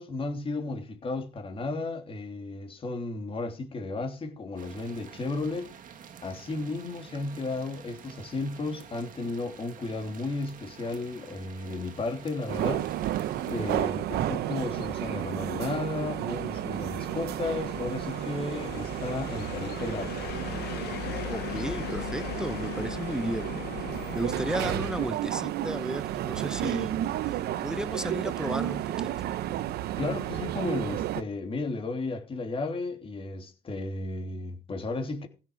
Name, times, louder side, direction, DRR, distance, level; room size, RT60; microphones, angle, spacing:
voice 1, 0.0-5.7 6.2-12.9 13.4-20.5 30.0-35.3, left 3 dB, 35° left, 3.2 m, -34 dB
sound 1, 4.6-13.8, right 8 dB, 55° right, 2.2 m, -49 dB
sound 2, 12.5-31.2, right 12 dB, 70° right, 0.8 m, -32 dB
sound 3, 14.4-25.1, left 14 dB, 75° left, 0.8 m, -40 dB
voice 2, 21.3-23.5 24.1-29.1, equal, 5° right, 0.8 m, -34 dB
16.0 x 7.4 x 6.4 m
cardioid pair, 110°, 17 cm